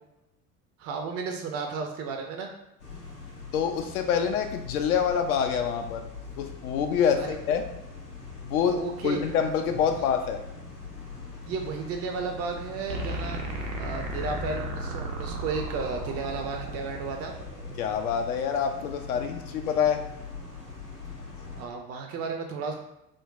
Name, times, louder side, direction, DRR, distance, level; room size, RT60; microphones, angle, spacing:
voice 1, 0.8-2.5 7.2-7.4 8.7-9.2 11.4-17.3 21.6-22.8, right 4 dB, 35° right, 3 dB, 0.4 m, -33 dB
sound 1, 2.8-21.6, left 4 dB, 85° left, 0.9 m, -42 dB
voice 2, 3.5-6.1 6.4-7.6 8.4-8.8 9.0-10.4 17.8-20.0, left 7 dB, 70° left, 6 dB, 0.5 m, -26 dB
sound 2, 12.9-17.9, right 1 dB, 85° right, 0.6 m, -35 dB
3.7 x 2.1 x 2.4 m, 0.90 s
figure-of-eight pair, 60°, 47 cm